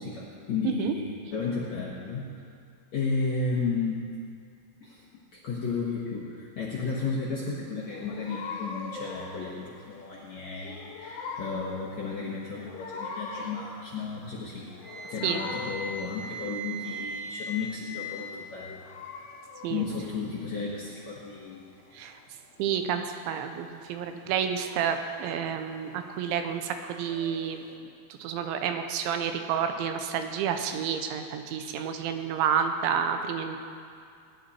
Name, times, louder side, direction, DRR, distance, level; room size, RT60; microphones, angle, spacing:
voice 1, 0.0-2.4 2.9-4.0 4.8-5.0 5.4-18.8 19.7-21.6, left 4 dB, 65° left, -6 dB, 1.8 m, -33 dB
sound 1, 7.8-27.8, left 4 dB, 90° left, 3.6 m, -43 dB
Wind instrument woodwind instrument, 14.8-18.3, equal, 30° left, 0.5 m, -38 dB
voice 2, 22.6-27.6 28.2-33.6, right 8 dB, 80° right, 6 dB, 3.1 m, -30 dB
19.5 x 11.0 x 4.3 m, 2.3 s
omnidirectional pair, 5.4 m